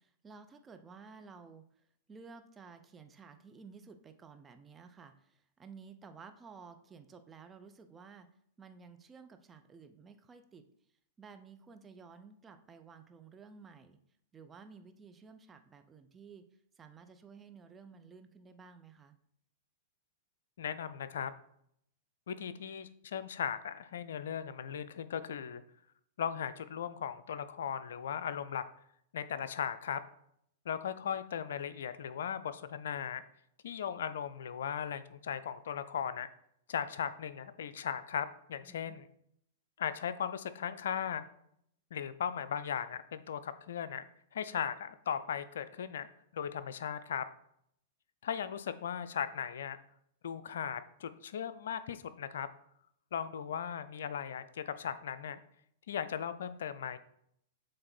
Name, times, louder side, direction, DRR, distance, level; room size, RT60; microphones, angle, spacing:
voice 1, 0.0-1.6 2.1-8.3 8.6-10.7 11.2-14.0 14.3-16.5 16.8-19.2 38.6-39.0, right 5 dB, 20° right, 7 dB, 0.6 m, -54 dB
voice 2, 20.6-21.3 22.3-25.6 26.2-28.6 29.1-30.0 30.7-33.2 33.6-36.3 36.7-39.1 39.8-41.2 41.9-44.0 44.3-46.1 46.3-47.3 48.2-49.8 50.2-52.5 53.1-55.4 55.9-57.0, left 8 dB, 70° left, 13 dB, 0.4 m, -37 dB
7.6 x 3.3 x 4.4 m, 0.71 s
hypercardioid pair, 105°, 0 cm